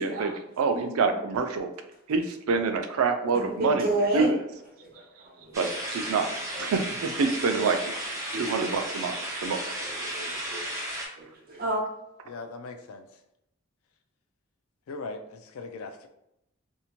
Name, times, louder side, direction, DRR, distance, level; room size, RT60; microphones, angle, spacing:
voice 1, 0.0-1.7 2.1-3.9 4.1-4.4 5.6-5.7 5.9-6.3 6.6-7.8 8.4-9.1 9.4-9.6, right 4 dB, 85° right, 6 dB, 0.4 m, -26 dB
voice 2, 0.7-1.3 3.3-4.3 4.8-5.7 6.5-6.7 8.3-8.7 9.1-10.7 11.2-11.8, right 1 dB, 45° right, -2 dB, 0.8 m, -32 dB
sound 1, 5.5-11.1, right 1 dB, 15° right, 0.6 m, -34 dB
voice 3, 12.3-13.1 14.9-16.1, left 3 dB, 85° left, 7 dB, 0.4 m, -39 dB
2.6 x 2.1 x 2.9 m, 0.82 s
head